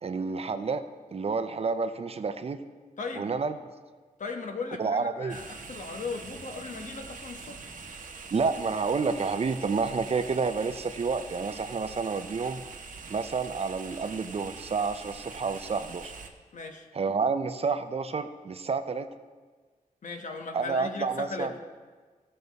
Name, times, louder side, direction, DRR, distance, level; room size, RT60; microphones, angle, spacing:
voice 1, 0.0-0.8 1.1-2.6 3.2-3.6 4.8-5.4 8.3-12.6 13.1-16.1 16.9-19.1 20.5-21.5, right 4 dB, 45° right, 10 dB, 0.5 m, -29 dB
voice 2, 3.0-3.3 4.2-7.6 16.5-16.9 20.0-21.5, left 4 dB, 65° left, 4 dB, 1.1 m, -37 dB
sound 1, 5.3-16.3, right 4 dB, 70° right, 0.9 m, -44 dB
16.0 x 6.6 x 4.1 m, 1.4 s
wide cardioid pair, 135°, 14 cm